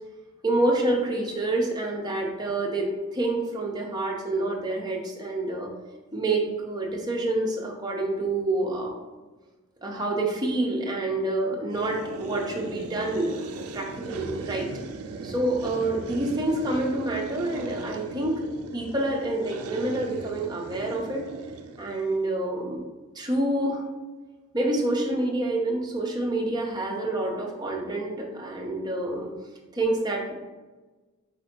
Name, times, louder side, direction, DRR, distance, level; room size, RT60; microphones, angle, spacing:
voice 1, 0.4-5.7 6.1-8.9 9.8-14.7 15.2-18.4 18.7-21.2 21.8-22.9 23.1-23.8 24.5-29.3 29.7-30.3, right 2 dB, 20° right, -1 dB, 0.6 m, -27 dB
sound 1, 11.7-22.2, right 4 dB, 85° right, 0.4 m, -38 dB
4.3 x 2.7 x 4.3 m, 1.2 s
head